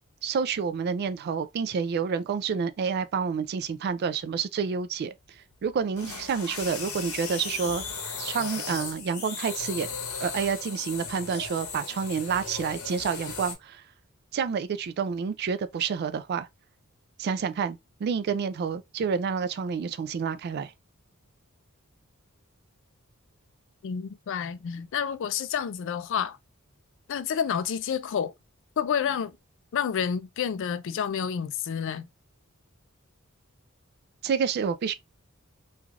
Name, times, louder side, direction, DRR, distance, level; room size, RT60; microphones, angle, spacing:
voice 1, 0.2-5.1 5.6-7.8 8.2-9.9 10.2-13.8 14.3-16.5 17.2-20.7 34.2-34.9, right 6 dB, 50° right, 0.3 m, -29 dB
sound 1, 5.5-13.5, left 5 dB, 85° left, 0.9 m, -36 dB
voice 2, 23.8-26.4 27.1-28.3 28.8-29.3 29.7-32.0, left 7 dB, 60° left, 0.4 m, -29 dB
3.2 x 2.4 x 2.3 m
head